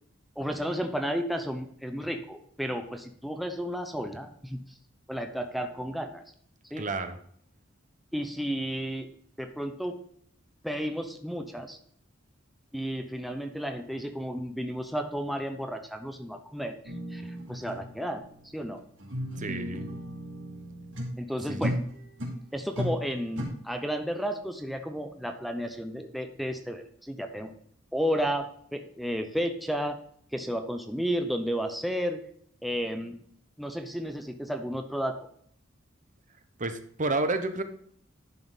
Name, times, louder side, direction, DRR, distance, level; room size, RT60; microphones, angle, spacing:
voice 1, 0.4-4.6 5.1-6.2 6.7-6.9 8.1-9.1 9.4-10.0 10.6-11.8 12.7-16.7 17.1-18.2 18.5-18.8 21.2-21.8 22.5-27.5 27.9-30.0 30.3-32.2 32.6-33.2 33.6-35.2, equal, ahead, 5 dB, 0.7 m, -32 dB
voice 2, 6.8-7.2 19.4-19.9 21.5-21.7 36.6-37.6, right 2 dB, 40° right, 9 dB, 0.9 m, -30 dB
sound 1, 16.9-21.2 21.6-22.4 22.8-23.5, equal, 70° right, 2.8 m, -35 dB
11.0 x 5.7 x 4.0 m, 0.64 s
head